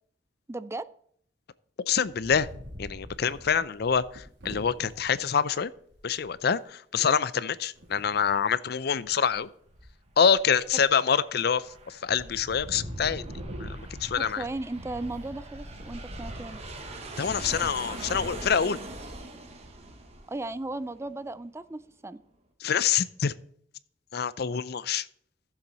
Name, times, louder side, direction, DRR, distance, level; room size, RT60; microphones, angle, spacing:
voice 1, 0.5-0.9 14.2-16.6 20.3-22.2, right 2 dB, 15° right, 16 dB, 0.4 m, -36 dB
voice 2, 1.9-2.5 2.8-5.7 6.0-9.5 10.2-13.2 13.6-14.4 17.2-18.8 22.6-23.3 24.1-25.1, left 7 dB, 60° left, 17 dB, 0.5 m, -26 dB
Wind, 2.0-5.1 5.6-5.7 5.9-6.3 7.7-8.3 8.9-9.4 9.7-10.8 11.3-11.8 12.1-20.3, equal, 80° right, 2.9 m, -43 dB
Aircraft, 10.5-21.5, right 3 dB, 35° right, 1.3 m, -44 dB
14.5 x 7.4 x 4.1 m, 0.64 s
head